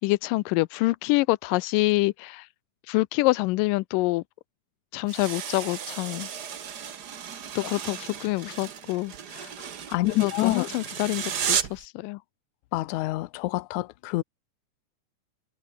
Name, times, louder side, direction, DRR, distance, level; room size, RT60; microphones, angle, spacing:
voice 1, 0.0-2.5 2.9-4.2 4.9-6.3 7.6-9.1 10.0-12.2, left 21 dB, 90° left, 2.2 m, -26 dB
sound 1, 5.1-11.9, right 8 dB, 55° right, 1.1 m, -34 dB
voice 2, 9.9-10.7 12.7-14.2, left 18 dB, 75° left, 2.0 m, -27 dB
omnidirectional pair, 3.8 m